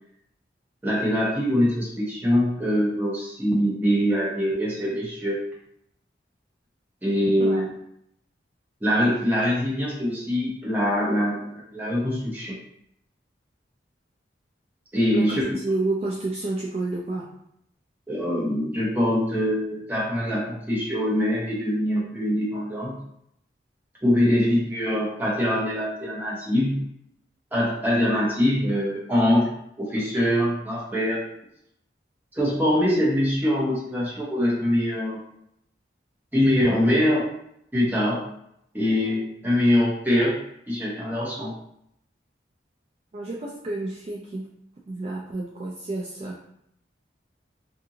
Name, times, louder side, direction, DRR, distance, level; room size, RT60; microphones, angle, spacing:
voice 1, 0.8-5.4 7.0-7.7 8.8-12.6 14.9-15.4 18.1-22.9 24.0-26.8 27.5-29.5 29.8-31.2 32.3-35.2 36.3-37.3 37.7-38.2 38.7-40.4 40.7-41.5, equal, 10° right, -6 dB, 0.7 m, -23 dB
voice 2, 15.1-17.4 43.1-44.5 44.9-46.4, right 2 dB, 35° right, -4 dB, 0.3 m, -30 dB
2.6 x 2.5 x 2.7 m, 0.73 s
head